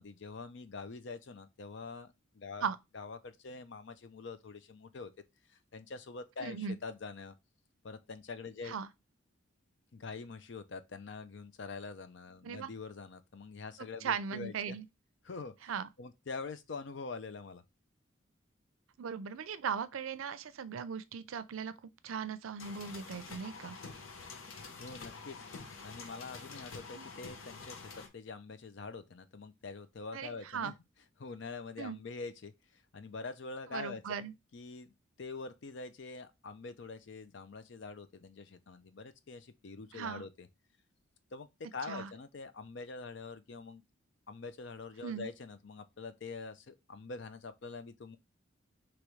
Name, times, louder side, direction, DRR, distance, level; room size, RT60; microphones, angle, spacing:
voice 1, 0.0-2.7 2.9-5.1 5.7-7.3 7.8-8.8 9.9-14.8 15.2-15.7 16.0-17.6 24.8-30.7 31.2-40.5 41.3-43.8 44.3-48.2, left 4 dB, 60° left, 0.5 m, -45 dB
voice 2, 6.4-6.8 8.6-8.9 12.4-12.7 14.0-14.9 15.7-15.9 19.0-23.8 26.9-27.1 30.1-30.7 31.8-32.0 33.7-34.3 39.9-40.2 41.9-42.1 45.0-45.3, right 6 dB, 90° right, 0.4 m, -38 dB
sound 1, 22.6-28.1, left 4 dB, 85° left, 0.9 m, -47 dB
4.8 x 3.0 x 3.1 m
head